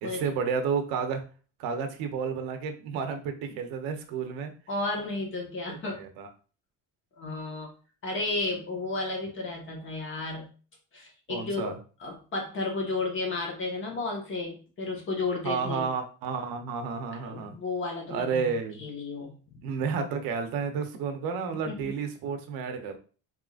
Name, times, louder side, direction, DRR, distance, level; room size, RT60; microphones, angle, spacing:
voice 1, 0.0-1.2 1.6-4.5 5.7-6.3 11.3-11.8 15.4-17.6 18.1-18.8 19.6-23.0, right 6 dB, 80° right, 5 dB, 0.9 m, -31 dB
voice 2, 4.7-6.0 7.2-7.7 8.0-10.4 10.9-11.7 12.0-15.8 17.1-18.5 18.8-19.6 21.6-21.9, left 3 dB, 35° left, 0 dB, 1.3 m, -33 dB
4.2 x 3.7 x 2.4 m, 0.37 s
cardioid pair, 150°, 35 cm